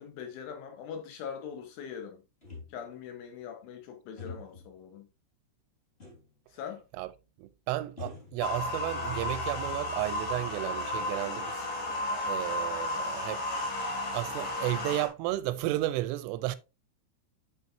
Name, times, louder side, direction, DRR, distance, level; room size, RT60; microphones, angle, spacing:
voice 1, 0.0-2.2 2.7-5.1 6.5-6.8, left 7 dB, 75° left, 3.6 m, -42 dB
sound 1, 2.4-3.1 4.2-4.7 6.0-6.4 6.7-6.8 8.0-9.0 9.4-10.2, left 4 dB, 30° left, 1.1 m, -46 dB
voice 2, 7.4-11.7 12.3-13.4 14.1-16.6, right 16 dB, 85° right, 3.1 m, -33 dB
sound 2, 8.4-15.1, left 1 dB, 50° left, 3.3 m, -33 dB
8.9 x 6.0 x 2.7 m
omnidirectional pair, 5.7 m